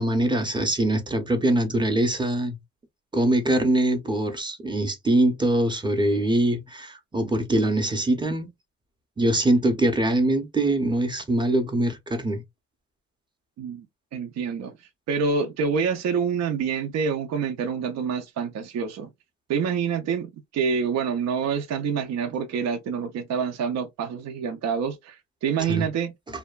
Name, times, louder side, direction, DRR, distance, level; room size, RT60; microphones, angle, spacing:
voice 1, 0.0-2.6 3.1-8.5 9.2-12.4 25.7-25.9, right 1 dB, 15° right, 0.6 m, -23 dB
voice 2, 14.1-14.7 15.1-19.1 19.5-26.2, right 6 dB, 60° right, 0.5 m, -27 dB
2.6 x 2.2 x 2.3 m
cardioid pair, 90°, 30 cm